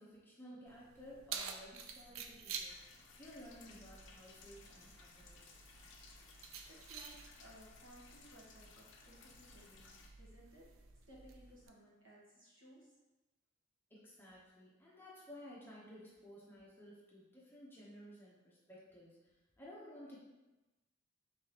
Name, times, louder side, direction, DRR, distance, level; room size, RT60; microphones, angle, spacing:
voice 1, 0.0-5.5 13.9-20.2, equal, 10° left, -6 dB, 0.7 m, -55 dB
Keys jangling, 0.7-11.7, right 6 dB, 85° right, 0.4 m, -51 dB
sound 1, 2.7-10.1, left 4 dB, 60° left, 0.5 m, -60 dB
voice 2, 6.4-13.0, right 1 dB, 65° right, -5 dB, 1.3 m, -61 dB
3.8 x 3.5 x 2.8 m, 1.1 s
head